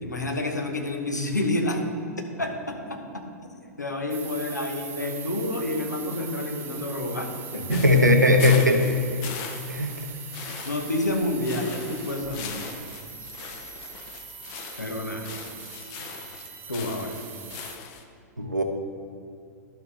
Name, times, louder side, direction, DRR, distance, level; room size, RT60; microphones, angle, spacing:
voice 1, 0.0-1.8 2.4-2.8 3.4-7.8 10.6-12.6 14.8-15.3 16.7-17.2, left 1 dB, 85° left, 3 dB, 1.0 m, -29 dB
sound 1, 4.1-17.8, right 7 dB, 20° right, 0.8 m, -41 dB
sound 2, 7.7-18.0, left 7 dB, 35° left, 0.7 m, -40 dB
voice 2, 7.7-9.0 9.7-9.9 18.4-18.6, left 1 dB, 85° right, 4 dB, 0.8 m, -19 dB
12.0 x 5.7 x 3.4 m, 2.4 s
figure-of-eight pair, 100°, 9 cm